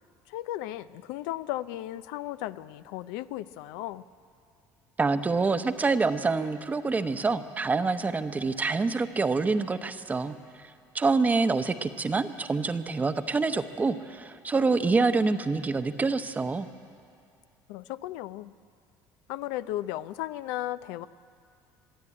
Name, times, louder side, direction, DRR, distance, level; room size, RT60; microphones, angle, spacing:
voice 1, 0.3-4.1 17.7-18.5 19.3-21.1, left 14 dB, 90° left, 14 dB, 0.5 m, -35 dB
voice 2, 5.0-10.3 10.9-16.7, right 4 dB, 20° right, 10 dB, 0.9 m, -26 dB
23.0 x 12.0 x 9.7 m, 2.4 s
cardioid pair, 115°, 8 cm